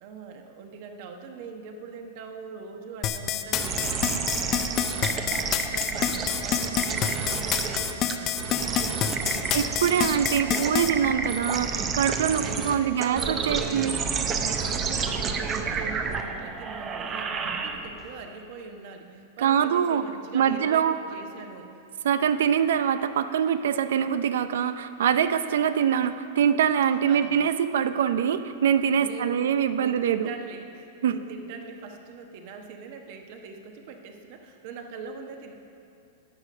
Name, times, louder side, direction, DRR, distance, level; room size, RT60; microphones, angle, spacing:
voice 1, 0.0-9.5 12.4-14.0 14.4-21.8 27.1-27.4 28.9-35.5, right 5 dB, 45° right, 5 dB, 1.1 m, -42 dB
sound 1, 3.0-10.9, left 10 dB, 30° left, 0.5 m, -27 dB
sound 2, 3.6-18.1, right 5 dB, 20° right, 0.6 m, -30 dB
voice 2, 9.5-13.9 19.4-20.0 20.3-20.9 22.0-30.3 31.0-31.2, right 8 dB, 75° right, 12 dB, 0.5 m, -24 dB
11.0 x 8.4 x 6.3 m, 2.6 s
supercardioid pair, 160°, 0 cm